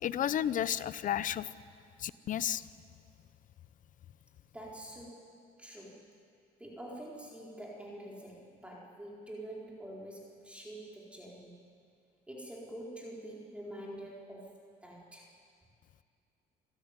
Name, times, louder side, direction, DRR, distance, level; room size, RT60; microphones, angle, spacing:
voice 1, 0.0-1.5 2.0-2.7, left 10 dB, 50° left, 16 dB, 0.7 m, -32 dB
voice 2, 4.5-6.1 6.6-11.5 12.3-15.3, right 1 dB, 5° right, -3 dB, 4.2 m, -46 dB
27.5 x 13.5 x 9.8 m, 2.4 s
cardioid pair, 110°, 17 cm